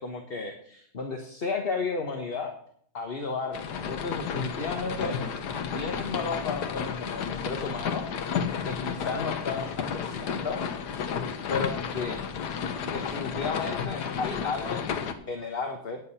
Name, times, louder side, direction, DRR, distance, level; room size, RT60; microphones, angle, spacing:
voice 1, 0.0-2.5 2.9-5.2 5.7-8.1 8.6-10.6 11.5-12.2 12.8-14.8 15.3-16.0, left 4 dB, 40° left, 4 dB, 1.1 m, -33 dB
sound 1, 3.5-15.1, left 7 dB, 65° left, 1.5 m, -32 dB
9.7 x 9.1 x 5.6 m, 0.63 s
omnidirectional pair, 1.9 m